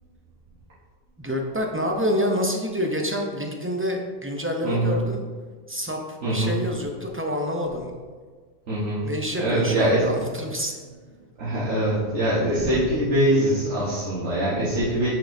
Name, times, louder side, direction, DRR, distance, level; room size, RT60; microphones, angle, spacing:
voice 1, 1.2-5.2 5.7-7.9 9.0-10.7, equal, 20° right, 1 dB, 0.3 m, -27 dB
voice 2, 4.6-5.0 6.2-6.6 8.7-9.1 9.4-10.2 11.4-15.1, right 1 dB, 80° right, -10 dB, 1.6 m, -23 dB
6.6 x 6.1 x 2.6 m, 1.5 s
omnidirectional pair, 1.2 m